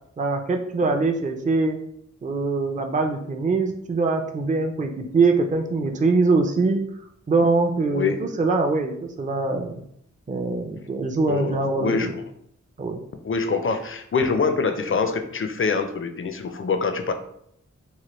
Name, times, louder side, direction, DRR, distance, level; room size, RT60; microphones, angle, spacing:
voice 1, 0.2-1.8 2.2-6.8 7.3-9.8 10.3-12.1 12.8-13.0, right 3 dB, 25° right, 4 dB, 0.4 m, -23 dB
voice 2, 7.9-8.2 11.3-12.1 13.2-17.1, left 5 dB, 45° left, 7 dB, 0.4 m, -25 dB
3.2 x 2.2 x 2.9 m, 0.71 s
wide cardioid pair, 40°, 31 cm